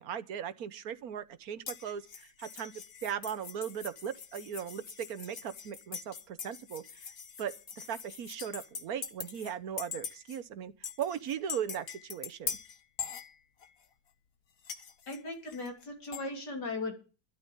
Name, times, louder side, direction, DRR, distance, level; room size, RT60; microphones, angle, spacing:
voice 1, 0.0-2.7 3.0-7.1 7.4-10.7 11.0-12.6, right 8 dB, 65° right, 1.3 m, -38 dB
sound 1, 1.7-9.5 9.8-10.4 10.8-13.8 14.6-16.3, left 7 dB, 55° left, 1.7 m, -43 dB
voice 2, 15.1-16.9, left 2 dB, 90° left, 3.8 m, -37 dB
12.5 x 11.5 x 5.4 m
omnidirectional pair, 1.7 m